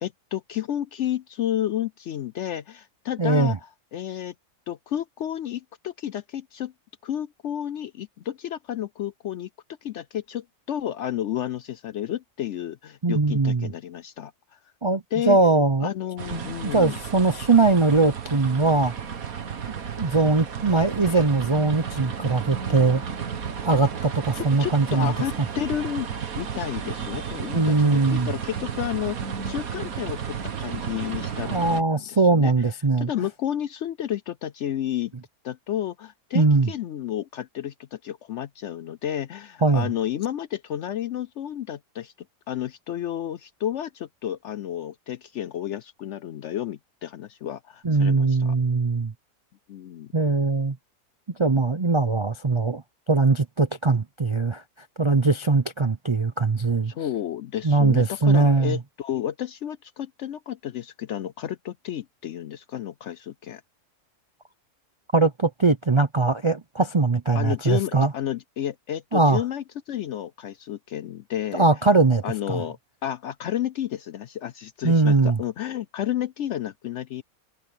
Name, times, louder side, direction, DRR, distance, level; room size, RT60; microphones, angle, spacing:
voice 1, 0.0-4.3 4.7-6.7 7.0-9.5 9.8-14.6 15.1-15.4 15.8-17.0 24.3-26.1 26.4-29.2 29.4-32.5 33.0-35.1 35.4-42.1 42.5-48.6 49.7-50.1 56.9-63.6 67.3-71.7 72.2-77.2, left 11 dB, 65° left, 0.7 m, -31 dB
voice 2, 3.2-3.6 13.0-13.7 14.8-15.9 16.3-18.9 20.0-23.0 23.6-25.1 27.5-28.3 31.4-33.1 36.3-36.7 39.6-39.9 47.8-49.1 50.1-50.8 51.4-52.8 53.1-54.6 55.0-56.9 57.6-58.8 65.1-68.1 69.1-69.4 71.5-72.6 74.8-75.4, right 3 dB, 40° right, 0.4 m, -21 dB
sound 1, 16.2-31.8, right 7 dB, 65° right, 1.8 m, -33 dB
omnidirectional pair, 1.6 m